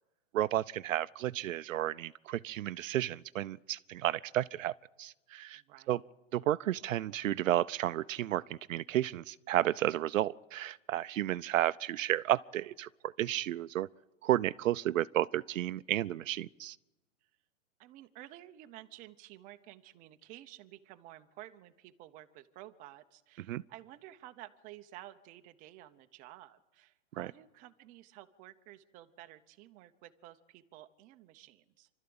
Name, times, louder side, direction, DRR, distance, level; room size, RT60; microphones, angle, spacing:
voice 1, 0.3-4.7 5.0-5.6 5.9-6.0 6.3-13.9 14.2-16.8 23.5-23.6 27.2-27.3, right 13 dB, 80° right, 0.6 m, -32 dB
voice 2, 5.6-6.0 17.8-31.9, right 14 dB, 20° right, 0.7 m, -52 dB
25.5 x 13.0 x 8.7 m
hypercardioid pair, 150°, 39 cm